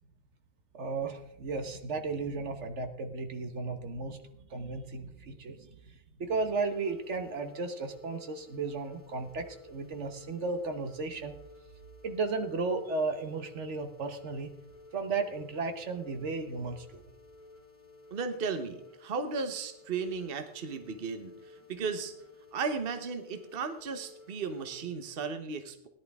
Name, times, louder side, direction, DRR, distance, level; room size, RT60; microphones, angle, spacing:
voice 1, 0.7-4.2 4.5-11.3 12.0-14.5 14.9-17.0, right 3 dB, 70° right, 7 dB, 1.4 m, -34 dB
sound 1, 6.3-24.9, left 3 dB, 10° right, 2.5 m, -55 dB
voice 2, 18.1-22.1 22.5-25.9, right 5 dB, 50° right, 8 dB, 1.2 m, -35 dB
17.5 x 11.0 x 3.5 m, 0.79 s
omnidirectional pair, 1.2 m